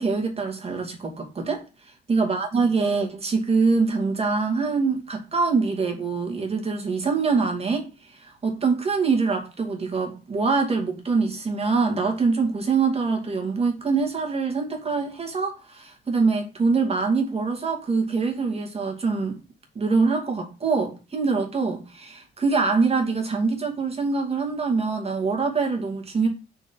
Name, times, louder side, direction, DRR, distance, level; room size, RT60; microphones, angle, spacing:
voice 1, 0.0-1.6 2.1-19.4 19.7-26.3, right 4 dB, 30° right, 2.3 m, -24 dB
6.1 x 4.5 x 5.4 m
cardioid pair, 90°, 20 cm